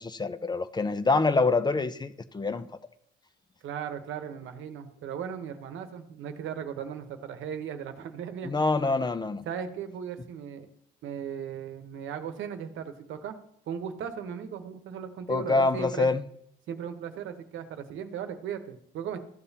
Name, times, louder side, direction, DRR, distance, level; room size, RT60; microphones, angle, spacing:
voice 1, 0.0-2.7 8.4-9.4 15.3-16.2, left 3 dB, 20° left, 0.5 m, -26 dB
voice 2, 3.6-8.5 9.5-10.7 11.0-13.4 13.7-16.1 16.7-19.2, right 8 dB, 80° right, 1.0 m, -37 dB
13.5 x 7.0 x 2.8 m
cardioid pair, 90°, 20 cm